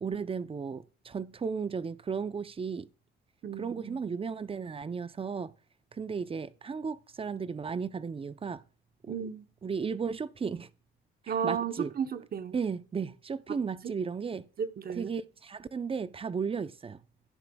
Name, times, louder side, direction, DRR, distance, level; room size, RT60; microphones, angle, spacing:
voice 1, 0.0-2.9 3.6-5.5 5.9-8.6 9.0-9.1 9.6-10.7 11.2-11.9 12.5-14.5 15.0-17.0, right 5 dB, 30° right, 0.6 m, -35 dB
voice 2, 3.4-4.0 9.1-9.4 11.3-12.6 13.5-13.6 13.8-13.9 14.6-15.2, right 7 dB, 50° right, 0.9 m, -34 dB
12.0 x 10.0 x 2.3 m
cardioid pair, 90°, 20 cm